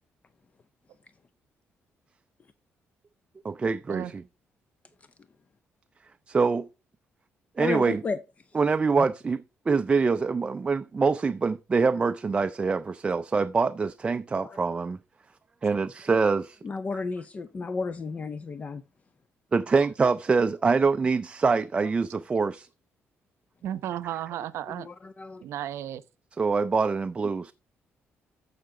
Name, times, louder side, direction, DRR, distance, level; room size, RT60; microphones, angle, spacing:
voice 1, 3.4-4.2 6.3-6.7 7.6-8.0 8.5-15.0 15.6-16.6 19.5-22.7 26.4-27.5, right 4 dB, 25° right, 0.4 m, -25 dB
voice 2, 7.6-8.2 9.0-9.1 14.4-14.6 16.6-18.8 24.7-25.4, left 4 dB, 30° left, 0.5 m, -33 dB
voice 3, 23.6-24.9 25.4-26.0, right 11 dB, 85° right, 0.7 m, -33 dB
14.5 x 5.8 x 3.7 m
cardioid pair, 135°, 5 cm